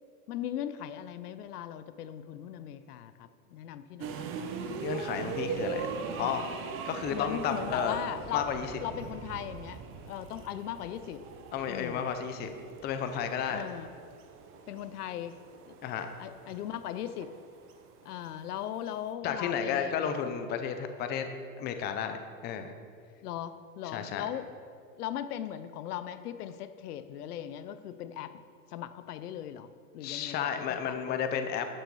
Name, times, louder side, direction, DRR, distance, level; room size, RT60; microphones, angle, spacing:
voice 1, 0.3-4.1 7.1-8.5 8.8-9.8 10.1-11.2 11.7-12.1 13.5-13.9 14.7-15.3 15.7-15.8 16.2-17.3 18.0-20.1 23.2-24.5 25.0-28.4 28.7-31.3, left 11 dB, 80° left, 12 dB, 0.8 m, -38 dB
sound 1, 4.0-19.1, right 5 dB, 30° right, 0.8 m, -40 dB
voice 2, 4.8-6.5 6.9-8.0 8.3-8.7 11.5-12.5 12.8-13.6 15.8-16.1 19.2-21.3 21.6-22.2 22.4-22.7 23.9-24.3 30.0-31.7, left 8 dB, 20° left, 7 dB, 0.6 m, -32 dB
12.0 x 6.7 x 4.8 m, 2.1 s
supercardioid pair, 140°, 45 cm